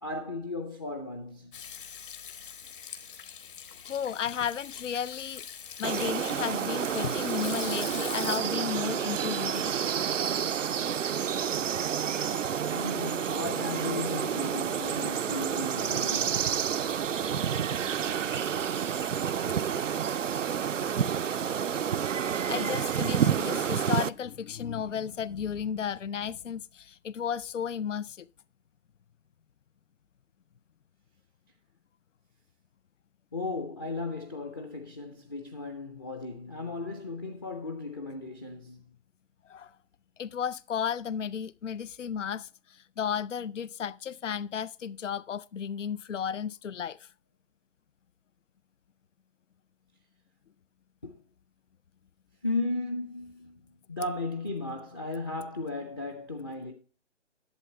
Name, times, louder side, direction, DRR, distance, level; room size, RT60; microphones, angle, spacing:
voice 1, 0.0-1.6 12.7-16.6 33.3-38.9 51.0-51.2 52.4-56.7, left 2 dB, 20° left, 0.5 m, -35 dB
Hands / Sink (filling or washing), 1.5-8.4, left 7 dB, 45° left, 1.4 m, -43 dB
voice 2, 3.9-5.4 5.8-9.7 18.3-18.7 22.5-28.3 39.5-39.8 40.2-47.1, left 8 dB, 80° left, 0.5 m, -34 dB
sound 1, 5.8-24.1, right 8 dB, 85° right, 0.5 m, -29 dB
11.0 x 8.0 x 3.2 m
figure-of-eight pair, 140°, 37 cm